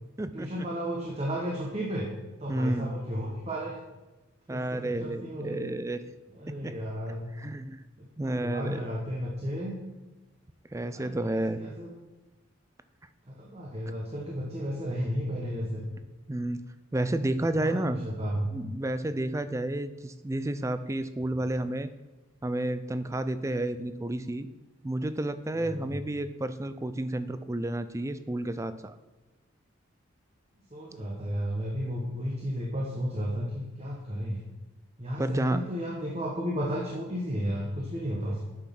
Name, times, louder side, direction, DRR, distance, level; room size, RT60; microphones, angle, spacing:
voice 1, 0.3-2.1 2.4-3.8 4.5-5.6 6.3-7.3 8.0-9.7 10.9-11.9 13.3-15.8 17.6-18.5 25.6-26.0 30.7-34.4 35.0-38.5, equal, 30° right, -3 dB, 1.2 m, -33 dB
voice 2, 2.5-2.9 4.5-6.0 6.6-6.7 7.4-7.8 8.2-8.8 10.7-11.6 16.3-16.6 16.9-18.0 18.5-21.9 22.4-24.5 24.8-29.0 35.2-35.6, right 1 dB, 15° right, 12 dB, 0.4 m, -31 dB
8.8 x 6.2 x 5.9 m, 1.1 s
head